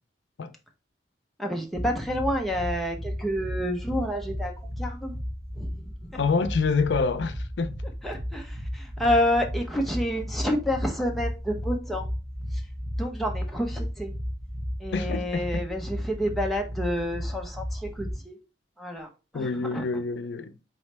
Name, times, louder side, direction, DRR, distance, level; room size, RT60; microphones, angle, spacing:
voice 1, 1.4-5.2 5.5-6.2 8.0-12.1 12.5-12.6 13.0-14.1 14.8-18.4 18.8-20.0, equal, ahead, 0.7 m, -29 dB
sound 1, 1.7-18.1, equal, 60° right, 2.2 m, -34 dB
voice 2, 6.1-7.7 14.9-15.4 19.3-20.5, left 4 dB, 85° left, 0.4 m, -26 dB
4.2 x 3.1 x 3.2 m
head